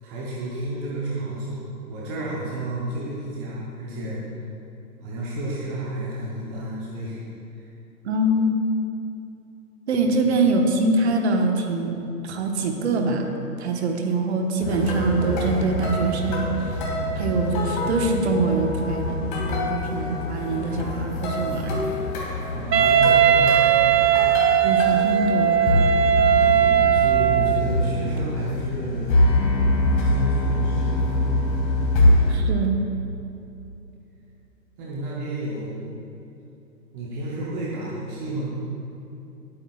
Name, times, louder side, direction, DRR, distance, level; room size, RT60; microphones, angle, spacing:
voice 1, 0.0-4.3 5.0-7.2 7.5-7.7 10.0-10.1 22.5-24.0 26.3-29.2 30.0-31.3 34.8-35.9 36.9-38.5, right 1 dB, 10° right, -6 dB, 0.7 m, -31 dB
voice 2, 8.0-8.6 9.9-11.9 12.2-13.2 13.6-16.7 17.2-21.8 24.6-25.5 32.3-32.8, right 2 dB, 40° right, 3 dB, 1.3 m, -24 dB
sound 1, 14.6-32.4, left 1 dB, 30° left, 2.3 m, -24 dB
Wind instrument woodwind instrument, 22.7-27.7, right 10 dB, 80° right, 0.7 m, -18 dB
19.0 x 8.8 x 2.4 m, 2.9 s
hypercardioid pair, 145°, 49 cm